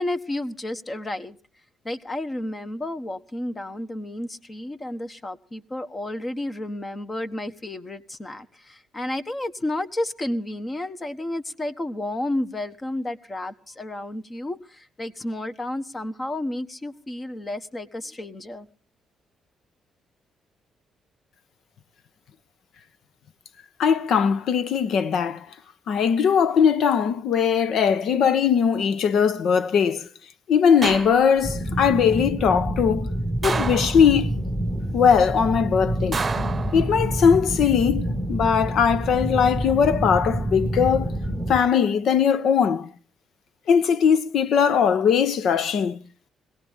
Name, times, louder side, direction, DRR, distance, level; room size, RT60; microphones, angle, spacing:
voice 1, 0.0-1.4 1.8-18.7, left 1 dB, 25° left, 1.3 m, -31 dB
voice 2, 23.8-25.4 25.9-30.1 30.5-33.1 33.4-34.3 34.9-36.2 36.7-41.1 41.5-42.9 43.7-46.0, left 7 dB, 70° left, 1.0 m, -20 dB
sound 1, 30.8-31.6 33.4-34.4 36.1-37.3 38.7-39.2, right 4 dB, 30° right, 0.9 m, -30 dB
sound 2, 31.4-41.6, right 1 dB, 5° right, 1.2 m, -27 dB
21.5 x 17.0 x 3.6 m
cardioid pair, 90°, 0 cm